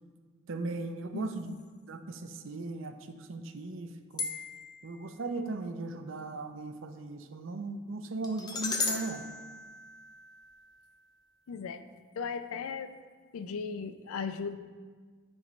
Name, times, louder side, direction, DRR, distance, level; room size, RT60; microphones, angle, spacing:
voice 1, 0.5-1.5 1.9-4.3 4.8-9.2, right 3 dB, 65° right, 7 dB, 0.5 m, -38 dB
voice 2, 1.1-1.6 11.5-11.8 12.1-12.9 13.3-14.6, left 5 dB, 85° left, 11 dB, 0.4 m, -37 dB
sound 1, 4.2-4.8 8.2-10.5, left 4 dB, 20° left, 0.5 m, -36 dB
8.5 x 3.1 x 5.2 m, 1.5 s
head